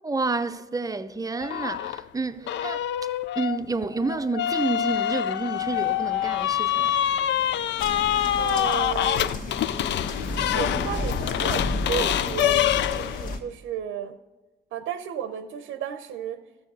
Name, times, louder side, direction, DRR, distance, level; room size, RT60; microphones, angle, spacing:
voice 1, 0.0-2.8 3.4-7.0, right 3 dB, 20° right, 0.6 m, -29 dB
sound 1, 1.4-2.0 2.5-13.4, left 11 dB, 65° left, 0.4 m, -26 dB
Mechanisms, 5.5-10.6, left 1 dB, 85° left, 2.4 m, -47 dB
sound 2, 7.8-13.4, left 2 dB, 45° left, 1.5 m, -32 dB
voice 2, 8.4-9.5 10.5-14.2 14.7-16.4, right 9 dB, 85° right, 0.7 m, -33 dB
13.5 x 7.0 x 5.4 m
cardioid pair, 90°, 20 cm